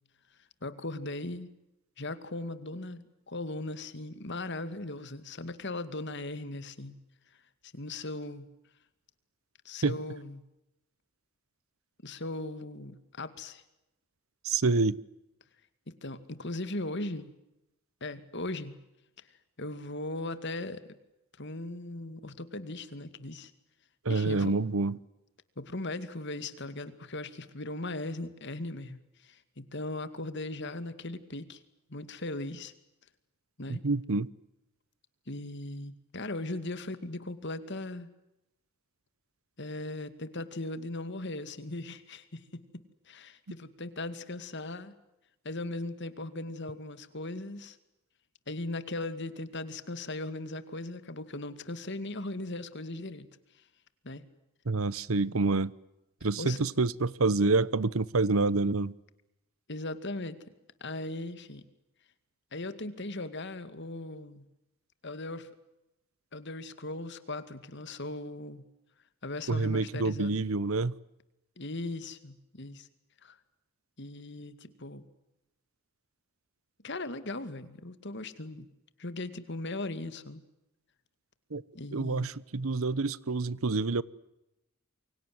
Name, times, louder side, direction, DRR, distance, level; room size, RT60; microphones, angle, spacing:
voice 1, 0.6-1.5 2.0-6.9 7.7-8.5 9.6-10.4 12.0-13.6 15.9-17.3 18.0-18.8 19.6-20.9 21.4-23.5 24.1-24.5 25.6-31.6 31.9-32.7 33.6-33.8 35.3-38.1 39.6-44.9 45.4-47.8 48.5-53.3 54.0-54.3 56.4-56.6 59.7-60.4 60.8-61.6 62.5-64.5 65.0-65.5 66.3-68.6 69.2-70.4 71.6-72.9 73.2-73.4 74.0-75.0 76.8-78.7 79.0-80.4 81.7-82.3, left 2 dB, 55° left, 2.3 m, -38 dB
voice 2, 14.4-15.0 24.0-25.0 33.7-34.3 54.7-55.7 56.2-58.9 69.5-70.9 81.5-81.6 81.9-84.0, right 3 dB, 80° right, 0.9 m, -27 dB
28.5 x 24.0 x 7.8 m
head